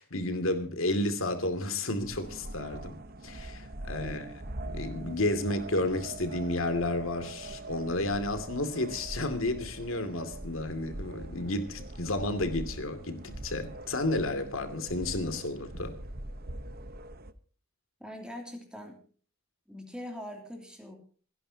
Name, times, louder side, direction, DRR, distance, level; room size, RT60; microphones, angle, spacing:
voice 1, 0.0-3.0 3.2-4.2 4.6-15.9, left 2 dB, 65° left, 2.6 m, -31 dB
sound 1, 2.0-17.3, right 2 dB, 45° right, 1.1 m, -42 dB
voice 2, 4.0-4.4 18.0-19.0 19.7-21.0, equal, 5° right, 2.9 m, -42 dB
28.0 x 11.0 x 2.9 m
head